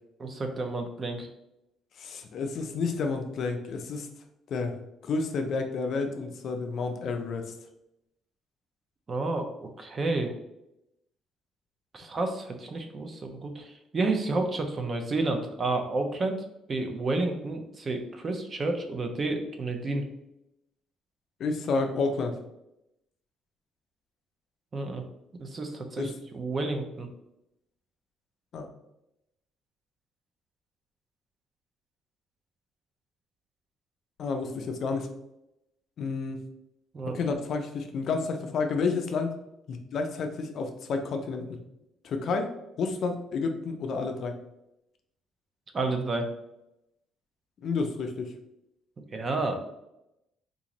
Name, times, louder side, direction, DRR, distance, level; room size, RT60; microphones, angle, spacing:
voice 1, 0.2-1.3 9.1-9.5 9.8-10.3 11.9-20.0 24.7-25.0 25.4-27.1 36.9-37.2 45.7-46.3 49.1-49.6, right 2 dB, 30° right, 5 dB, 0.5 m, -30 dB
voice 2, 2.0-4.1 4.5-4.8 5.0-7.4 21.4-22.3 26.0-26.1 28.5-28.7 34.2-35.1 36.0-36.4 37.1-39.3 39.7-41.6 42.0-42.5 42.8-44.3 47.6-48.3, left 4 dB, 50° left, 5 dB, 0.4 m, -30 dB
3.7 x 2.5 x 2.9 m, 0.86 s
cardioid pair, 155°, 0 cm